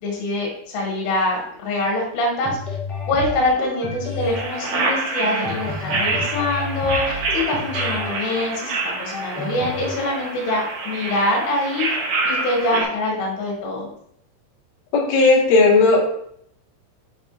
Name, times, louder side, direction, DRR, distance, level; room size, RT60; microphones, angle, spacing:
voice 1, 0.0-2.6 3.1-12.0 12.2-13.9, left 1 dB, 75° left, -3 dB, 4.6 m, -24 dB
sound 1, 2.4-10.3, left 3 dB, 15° left, 1.9 m, -31 dB
sound 2, 4.2-12.8, right 3 dB, 80° right, 1.8 m, -27 dB
voice 2, 14.9-16.0, left 3 dB, 50° left, -5 dB, 2.3 m, -15 dB
11.0 x 5.9 x 2.7 m, 0.70 s
omnidirectional pair, 5.9 m